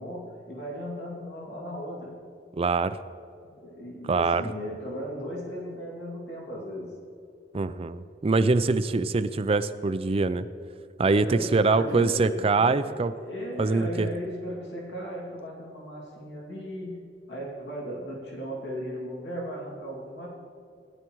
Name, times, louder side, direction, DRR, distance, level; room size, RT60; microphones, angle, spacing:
voice 1, 0.0-2.2 3.4-7.0 11.2-17.0 17.3-20.3, equal, 90° left, -3 dB, 2.5 m, -37 dB
voice 2, 2.6-3.0 4.1-4.4 7.5-10.5 11.0-13.1 13.6-14.1, right 3 dB, 35° right, 13 dB, 0.4 m, -24 dB
17.5 x 11.0 x 3.1 m, 2.5 s
head